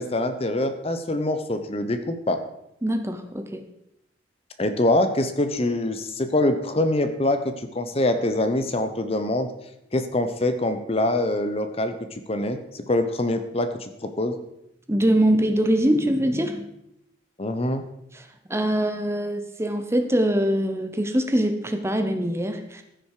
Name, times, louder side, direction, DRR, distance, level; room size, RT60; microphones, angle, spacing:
voice 1, 0.0-2.4 4.6-9.5 9.9-14.4 17.4-17.8, left 1 dB, 30° left, 8 dB, 0.8 m, -24 dB
voice 2, 2.8-3.6 14.9-16.7 18.1-22.8, right 1 dB, 15° right, 7 dB, 0.8 m, -23 dB
14.5 x 6.3 x 4.8 m, 0.82 s
head